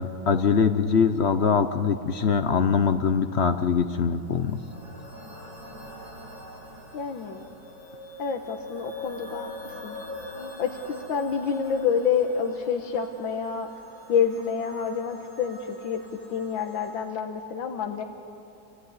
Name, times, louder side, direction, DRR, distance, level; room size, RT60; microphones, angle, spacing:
voice 1, 0.0-4.6, left 6 dB, 60° left, 9 dB, 0.7 m, -23 dB
sound 1, 4.1-16.9, left 1 dB, 55° right, 6.7 m, -43 dB
voice 2, 6.9-7.5 8.2-10.0 10.6-10.8 11.1-13.7 14.1-16.0 16.3-18.0, left 7 dB, 90° left, 4 dB, 1.9 m, -28 dB
27.5 x 16.0 x 9.5 m, 2.9 s
omnidirectional pair, 2.1 m